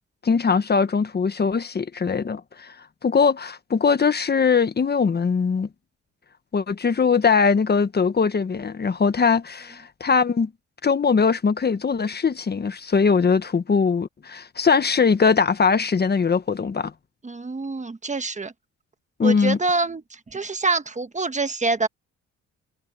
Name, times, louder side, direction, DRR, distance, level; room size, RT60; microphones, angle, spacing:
voice 1, 0.2-2.7 3.0-5.7 6.5-10.5 10.8-16.9 19.2-19.6, left 5 dB, 35° left, 1.3 m, -21 dB
voice 2, 17.2-18.5 19.2-21.9, right 3 dB, 25° right, 1.3 m, -26 dB
cardioid pair, 90°, 30 cm